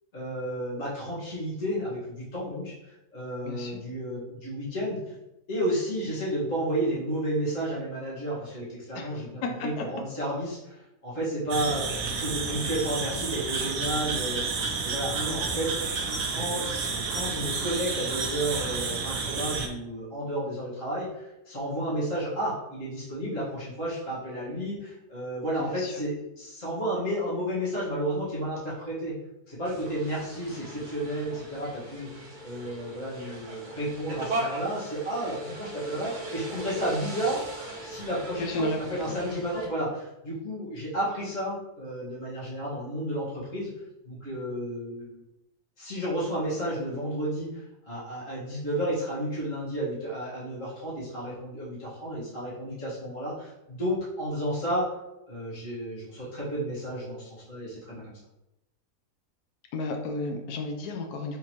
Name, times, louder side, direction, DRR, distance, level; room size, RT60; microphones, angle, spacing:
voice 1, 0.1-2.7 3.1-5.0 5.5-14.5 14.8-15.7 16.0-29.2 29.5-37.4 37.8-43.7 44.1-45.2 45.8-54.9 55.3-58.2, right 1 dB, 50° left, -8 dB, 2.1 m, -32 dB
voice 2, 3.4-3.8 8.9-9.8 25.6-25.9 38.4-38.8 39.0-39.1 59.7-61.4, left 2 dB, 75° left, 3 dB, 1.2 m, -33 dB
sound 1, 11.5-19.7, right 4 dB, 70° right, 1.2 m, -30 dB
sound 2, 29.6-39.7, right 1 dB, 40° right, 0.8 m, -39 dB
4.4 x 3.7 x 3.0 m, 0.91 s
omnidirectional pair, 1.7 m